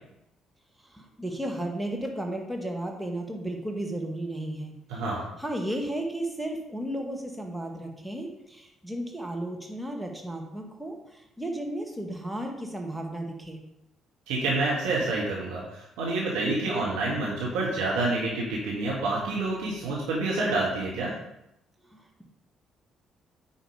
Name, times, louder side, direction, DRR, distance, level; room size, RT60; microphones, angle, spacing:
voice 1, 0.9-5.0 5.4-13.6 21.8-22.2, right 1 dB, 5° right, 1 dB, 1.9 m, -34 dB
voice 2, 4.9-5.2 14.3-21.1, right 2 dB, 65° right, -4 dB, 1.6 m, -28 dB
8.9 x 5.1 x 5.1 m, 0.84 s
figure-of-eight pair, 45°, 0 cm